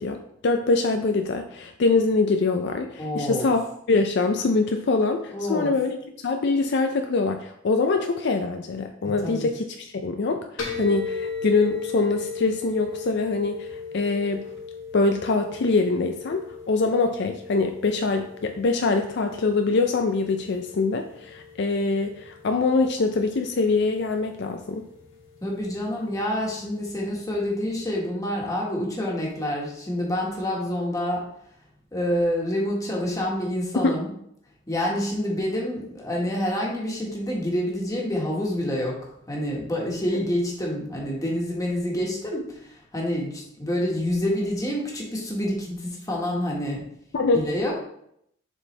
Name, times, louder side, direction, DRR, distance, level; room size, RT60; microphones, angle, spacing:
voice 1, 0.0-3.6 3.9-6.0 6.2-10.4 10.8-14.4 14.9-24.9 33.8-34.0 47.1-47.4, left 3 dB, 60° left, 5 dB, 0.4 m, -24 dB
voice 2, 3.0-3.5 5.3-5.8 9.0-9.5 25.4-31.3 31.9-34.1 34.7-46.9 47.3-47.7, left 1 dB, 20° left, -3 dB, 1.5 m, -27 dB
sound 1, 10.6-27.9, left 5 dB, 85° left, 1.2 m, -38 dB
7.0 x 4.4 x 3.3 m, 0.73 s
head